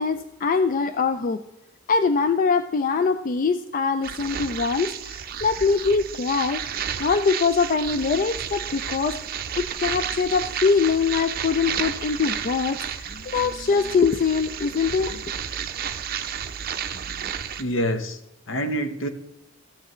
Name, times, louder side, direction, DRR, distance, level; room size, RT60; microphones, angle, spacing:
voice 1, 0.0-1.4 1.9-6.6 7.0-9.2 9.6-15.2, left 5 dB, 45° left, 10 dB, 0.4 m, -23 dB
sound 1, 4.0-17.6, right 8 dB, 50° right, 0.5 m, -32 dB
voice 2, 17.6-18.2 18.5-19.1, equal, 70° left, 9 dB, 0.9 m, -27 dB
13.5 x 8.1 x 3.1 m, 0.89 s
head